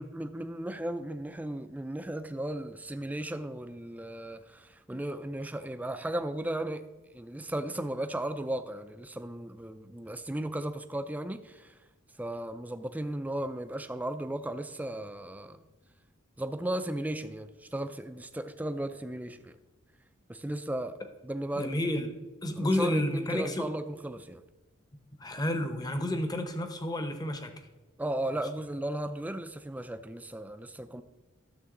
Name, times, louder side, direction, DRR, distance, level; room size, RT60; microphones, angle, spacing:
voice 1, 0.0-6.9 7.1-11.8 12.2-15.6 16.4-19.5 20.3-21.0 21.2-21.8 22.6-24.4 28.0-31.0, right 1 dB, 10° right, 0.4 m, -35 dB
voice 2, 21.6-22.1 22.4-23.7 25.2-27.5, left 1 dB, 20° left, 0.8 m, -30 dB
12.5 x 6.8 x 3.8 m
head